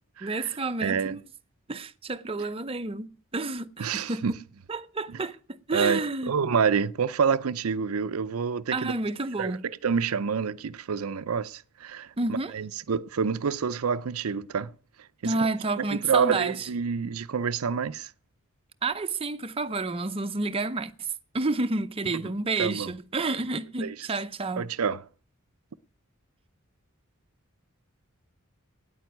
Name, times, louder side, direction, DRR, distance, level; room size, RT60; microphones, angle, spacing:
voice 1, 0.2-1.2 1.7-4.4 4.7-6.3 8.7-9.7 12.2-12.6 15.2-16.7 18.8-21.1 21.3-24.7, right 3 dB, 25° right, 0.7 m, -30 dB
voice 2, 0.8-1.2 3.8-4.3 5.7-8.9 9.4-14.7 15.2-15.3 15.9-18.1 22.6-22.9 23.8-24.0 24.6-25.0, right 6 dB, 85° right, 0.5 m, -27 dB
9.4 x 9.0 x 9.4 m
head